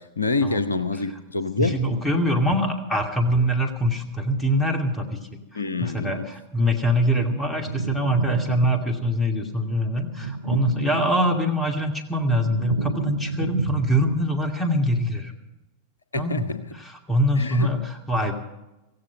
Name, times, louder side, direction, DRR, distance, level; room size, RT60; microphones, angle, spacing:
voice 1, 0.0-1.7 5.5-6.2 16.1-16.6 17.4-17.7, left 3 dB, 75° left, 13 dB, 0.8 m, -26 dB
voice 2, 1.6-15.3 16.1-18.3, equal, 15° left, 5 dB, 2.5 m, -24 dB
sound 1, 7.5-9.1 10.1-11.6 12.0-14.3, right 5 dB, 75° right, 0.7 m, -31 dB
16.5 x 15.5 x 5.3 m, 0.99 s
figure-of-eight pair, 90°, 0 cm